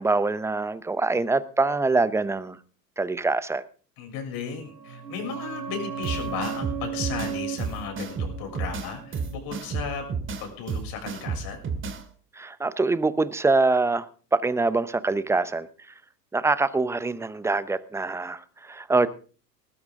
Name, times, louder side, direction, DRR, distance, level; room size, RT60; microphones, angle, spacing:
voice 1, 0.0-2.6 3.0-3.6 12.3-14.1 14.3-15.7 16.3-19.1, right 3 dB, 5° right, 17 dB, 0.7 m, -24 dB
voice 2, 4.0-10.1 10.4-11.6, left 6 dB, 45° left, 4 dB, 6.8 m, -35 dB
sound 1, 4.5-9.9 10.2-10.3, right 7 dB, 85° right, 1.3 m, -36 dB
sound 2, 6.0-12.0, right 5 dB, 25° right, 2.5 m, -32 dB
19.5 x 13.0 x 3.7 m, 0.38 s
figure-of-eight pair, 85°, 49 cm